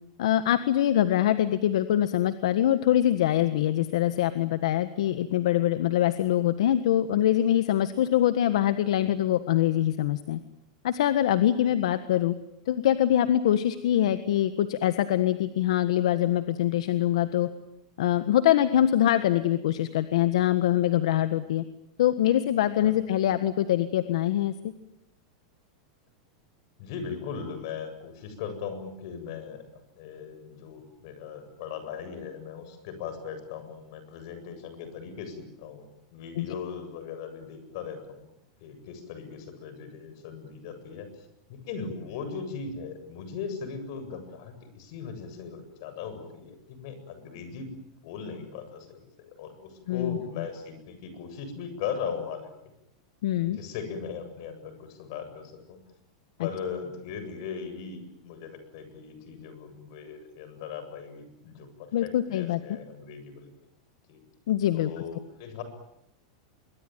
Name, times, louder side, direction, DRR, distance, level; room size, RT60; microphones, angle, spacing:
voice 1, 0.2-10.4 10.8-12.3 12.7-17.5 18.0-21.6 22.0-24.5 36.4-36.5 49.9-50.2 53.2-53.6 56.4-56.5 61.9-62.6 64.5-64.9, left 12 dB, 75° left, 11 dB, 1.5 m, -24 dB
voice 2, 26.8-38.3 38.6-47.7 48.0-52.5 53.4-55.8 56.4-63.5 64.1-64.2 64.7-65.6, left 6 dB, 50° left, 9 dB, 7.7 m, -38 dB
26.0 x 24.0 x 9.4 m, 0.81 s
supercardioid pair, 160°, 3 cm